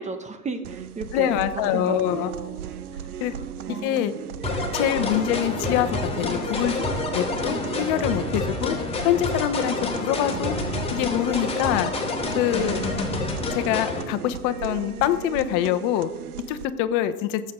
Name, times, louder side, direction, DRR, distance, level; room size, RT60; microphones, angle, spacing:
voice 1, 0.0-1.4 1.7-2.6 3.3-4.1, right 3 dB, 15° right, 8 dB, 0.9 m, -34 dB
sound 1, 0.6-16.6, right 8 dB, 75° right, 0.8 m, -36 dB
voice 2, 1.1-2.3 3.2-3.3 3.8-4.1 4.7-6.8 7.1-8.8 9.0-10.6 10.9-11.9 12.4-12.8 13.5-16.1 16.5-17.4, left 11 dB, 45° left, 11 dB, 1.1 m, -25 dB
sound 2, 4.4-14.0, left 3 dB, 15° left, 2.7 m, -28 dB
18.5 x 8.0 x 3.8 m, 1.0 s
figure-of-eight pair, 90°, 45 cm